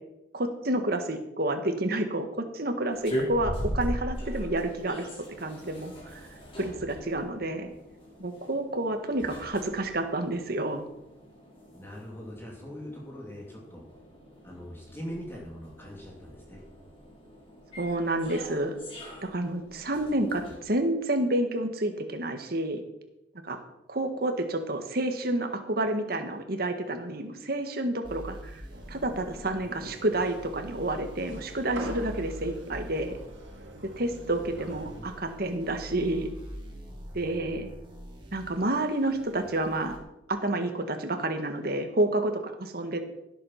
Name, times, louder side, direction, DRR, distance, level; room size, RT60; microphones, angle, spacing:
voice 1, 0.3-5.1 5.4-6.3 6.6-7.7 8.2-10.8 17.8-18.7 19.2-22.8 23.4-23.6 23.9-28.6 28.9-33.1 34.0-36.3 37.1-37.7 38.3-40.0 40.3-42.3 42.6-43.0, right 1 dB, 50° right, 6 dB, 1.7 m, -29 dB
sound 1, 2.9-20.6, equal, 30° left, 4.5 m, -40 dB
voice 2, 11.7-13.8 14.4-16.6 34.5-35.2, equal, 10° left, -2 dB, 2.6 m, -42 dB
sound 2, 28.0-40.0, equal, 25° right, 2.7 m, -45 dB
sound 3, 28.7-35.2, right 1 dB, 75° right, 2.3 m, -44 dB
17.0 x 7.8 x 5.9 m, 0.89 s
head